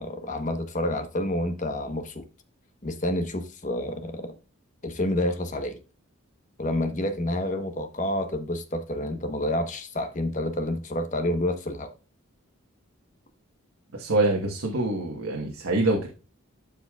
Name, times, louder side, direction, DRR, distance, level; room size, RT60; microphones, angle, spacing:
voice 1, 0.0-2.2 2.8-4.3 4.8-5.8 6.6-11.9, left 1 dB, 35° left, 1.1 m, -29 dB
voice 2, 13.9-16.1, right 2 dB, 80° right, 1.4 m, -25 dB
12.0 x 4.9 x 2.4 m
head